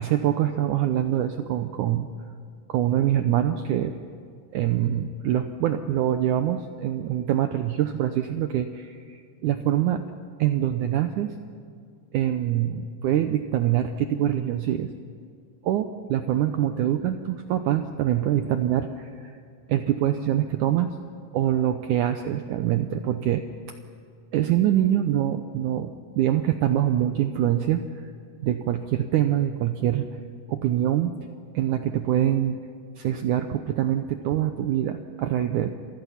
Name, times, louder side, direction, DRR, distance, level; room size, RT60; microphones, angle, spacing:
voice 1, 0.0-2.1 2.7-3.9 4.5-10.0 10.4-11.3 12.1-14.9 15.6-19.4 19.7-20.9 21.3-23.5 24.3-28.1 28.4-30.2 30.5-31.1 31.5-32.6 33.0-35.7, right 11 dB, 85° right, 8 dB, 1.7 m, -24 dB
29.0 x 24.5 x 5.8 m, 2.2 s
omnidirectional pair, 4.5 m